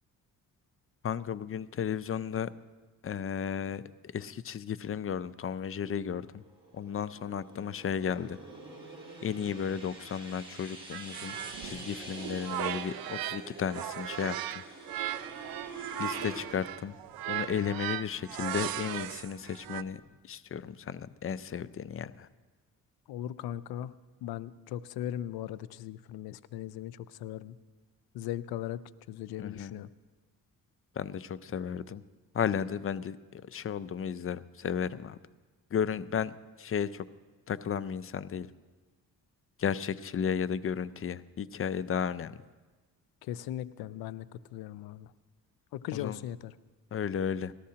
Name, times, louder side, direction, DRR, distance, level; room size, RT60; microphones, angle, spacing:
voice 1, 1.0-2.5 3.0-3.8 4.1-6.4 6.7-8.4 9.2-11.4 11.6-14.4 16.0-16.9 17.3-20.0 20.3-22.3 29.4-29.7 31.0-32.0 32.3-35.2 35.7-37.1 37.5-38.5 39.6-42.4 45.9-46.2 46.9-47.5, left 7 dB, 40° left, 16 dB, 0.5 m, -34 dB
sound 1, 6.3-16.5, right 2 dB, 15° right, 5.3 m, -46 dB
sound 2, 10.9-13.4 13.7-19.8, right 12 dB, 70° right, 0.6 m, -37 dB
sound 3, 14.9-20.1, right 1 dB, 5° left, 4.0 m, -63 dB
voice 2, 23.1-23.9 24.2-27.6 28.1-28.8 29.1-29.9 43.2-45.1 45.7-46.5, left 12 dB, 85° left, 17 dB, 0.5 m, -38 dB
19.0 x 13.0 x 2.8 m, 1.3 s
cardioid pair, 75°, 36 cm